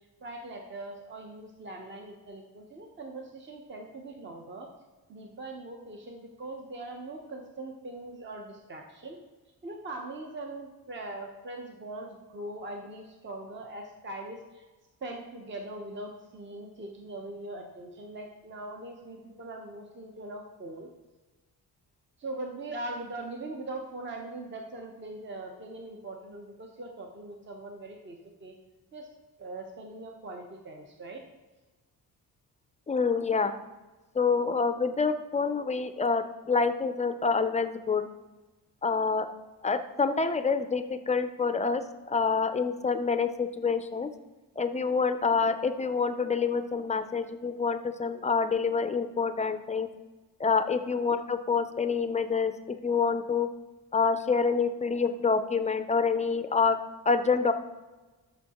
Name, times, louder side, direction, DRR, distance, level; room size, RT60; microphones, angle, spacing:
voice 1, 0.2-4.7 5.1-9.2 9.6-14.6 15.0-20.9 22.2-28.5 28.9-29.1 29.4-31.2 50.7-50.8, right 2 dB, 30° right, 2 dB, 0.8 m, -41 dB
voice 2, 32.9-33.5 34.2-38.1 38.8-39.3 39.6-44.1 44.6-49.9 50.4-52.5 52.8-53.5 53.9-56.8 57.1-57.5, left 5 dB, 20° left, 9 dB, 0.4 m, -27 dB
13.0 x 6.3 x 2.9 m, 1.2 s
wide cardioid pair, 150°, 36 cm